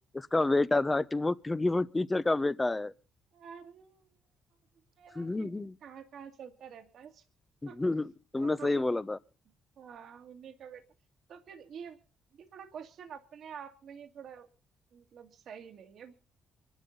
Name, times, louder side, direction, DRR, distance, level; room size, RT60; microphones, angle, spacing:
voice 1, 0.1-2.9 5.2-5.7 7.8-9.2, left 2 dB, 15° left, 0.9 m, -29 dB
voice 2, 3.3-4.1 5.0-5.5 5.8-7.2 7.7-7.8 8.4-9.0 9.8-10.8 11.3-12.0 12.3-14.5 14.9-16.1, right 7 dB, 65° right, 2.1 m, -48 dB
24.5 x 11.5 x 3.9 m
cardioid pair, 90°, 0 cm